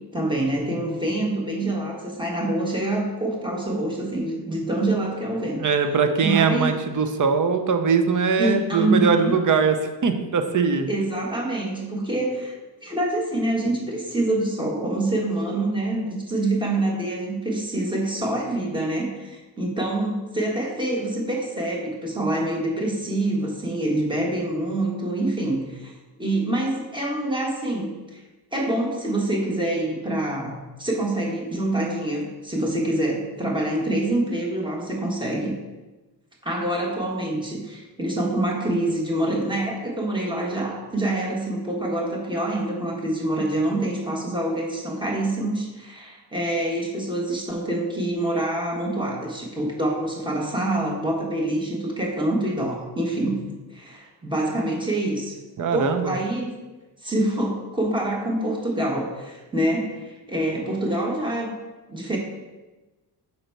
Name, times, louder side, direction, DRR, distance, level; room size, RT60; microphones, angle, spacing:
voice 1, 0.1-5.7 6.2-6.8 8.4-9.4 10.9-28.2 28.5-35.5 36.4-53.4 53.7-55.3 55.7-56.5 57.0-61.6 61.9-62.2, right 1 dB, 10° right, -1 dB, 1.2 m, -26 dB
voice 2, 5.6-9.8 10.0-10.9 55.6-56.1, right 5 dB, 45° right, 7 dB, 0.6 m, -21 dB
5.5 x 3.9 x 4.5 m, 1.2 s
wide cardioid pair, 125°, 41 cm